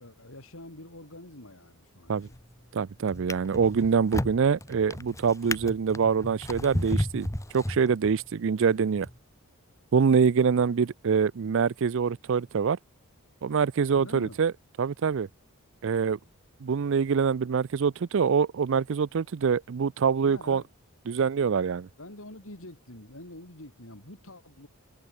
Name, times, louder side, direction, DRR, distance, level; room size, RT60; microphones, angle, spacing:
voice 1, 0.0-2.3 13.9-14.4 20.2-20.7 22.0-24.7, left 1 dB, 65° left, 6.5 m, -46 dB
Drawer open or close, 2.1-2.5 3.1-8.3 9.0-9.1, left 1 dB, 15° left, 2.1 m, -33 dB
voice 2, 2.7-7.3 7.5-9.1 9.9-12.8 13.4-14.5 14.8-15.3 15.8-16.2 16.6-20.6 21.1-21.9, right 6 dB, 60° right, 0.4 m, -25 dB
head